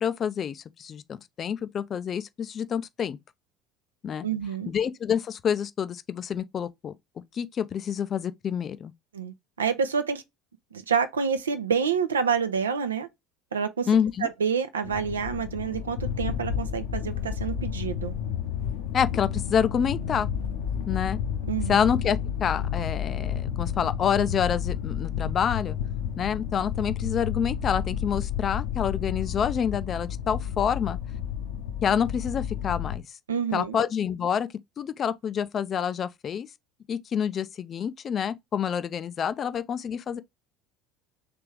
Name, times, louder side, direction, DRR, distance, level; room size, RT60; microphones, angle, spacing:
voice 1, 0.0-3.2 4.0-4.2 4.7-6.9 7.3-8.9 13.9-14.3 18.9-20.3 20.9-21.2 21.7-25.8 26.2-31.0 31.8-33.0 33.5-34.5 34.8-36.5 36.9-40.2, left 8 dB, 35° left, 0.4 m, -27 dB
voice 2, 4.2-4.7 9.1-10.2 10.7-13.1 13.5-13.9 14.2-18.1 21.5-21.8 33.3-33.8, right 6 dB, 75° right, 0.5 m, -28 dB
sound 1, 14.8-33.0, left 8 dB, 65° left, 0.7 m, -31 dB
3.4 x 3.3 x 3.1 m
figure-of-eight pair, 65°, 0 cm